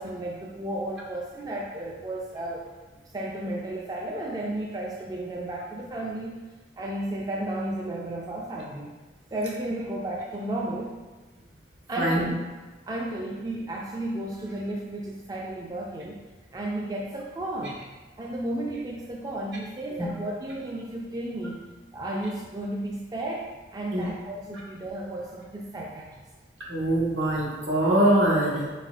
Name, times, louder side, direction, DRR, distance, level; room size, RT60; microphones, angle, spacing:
voice 1, 0.0-2.7 3.1-6.4 6.8-8.9 9.3-11.0 11.9-12.3 12.8-16.2 16.5-17.8 18.2-21.6 21.9-26.2, right 1 dB, 20° right, -3 dB, 0.3 m, -33 dB
voice 2, 12.0-12.3 19.9-20.1 23.9-24.1 26.7-28.7, right 1 dB, 70° right, -5 dB, 1.2 m, -23 dB
4.4 x 4.1 x 2.4 m, 1.2 s
head